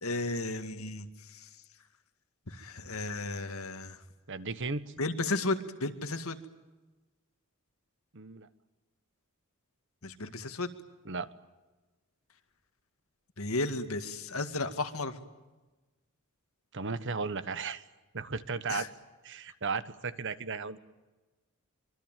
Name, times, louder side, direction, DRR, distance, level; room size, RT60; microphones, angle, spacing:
voice 1, 0.0-1.5 2.5-4.0 5.0-6.4 10.0-10.7 13.4-15.2 18.7-18.9, left 2 dB, 75° left, 9 dB, 2.1 m, -34 dB
voice 2, 4.3-4.8 8.1-8.5 11.0-11.3 16.7-17.8 18.1-18.9 19.2-20.8, right 4 dB, 60° right, 14 dB, 1.4 m, -35 dB
25.5 x 23.5 x 9.2 m, 1.2 s
head